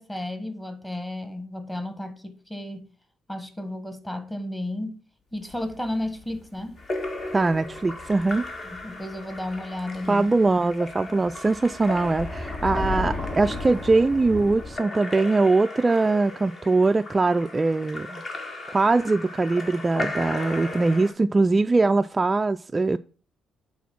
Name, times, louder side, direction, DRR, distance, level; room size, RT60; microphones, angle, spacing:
voice 1, 0.0-2.9 3.3-5.0 5.3-6.8 8.7-10.3, left 1 dB, 10° left, 1.5 m, -33 dB
sound 1, 5.5-10.1 10.4-10.5 11.0-14.8, left 3 dB, 65° left, 3.8 m, -35 dB
Splash splatter / Drip / Trickle dribble, 6.8-21.1, left 2 dB, 45° left, 1.9 m, -37 dB
voice 2, 7.3-8.5 10.1-18.2 18.7-23.0, right 3 dB, 25° right, 0.3 m, -22 dB
8.4 x 3.9 x 5.9 m
cardioid pair, 90°, 0 cm